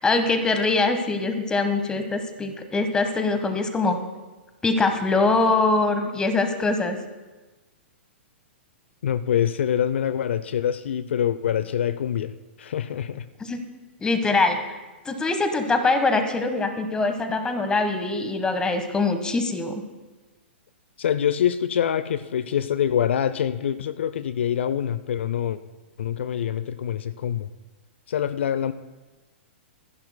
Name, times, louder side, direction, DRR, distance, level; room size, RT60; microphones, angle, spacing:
voice 1, 0.0-4.0 4.6-7.0 13.4-13.6 14.0-14.6 15.0-19.8, left 3 dB, 10° left, 8 dB, 1.2 m, -23 dB
voice 2, 9.0-12.3 12.6-13.3 21.0-25.6 26.0-27.5 28.1-28.7, left 9 dB, 70° left, 15 dB, 0.5 m, -25 dB
24.5 x 11.0 x 2.2 m, 1.2 s
hypercardioid pair, 120°, 6 cm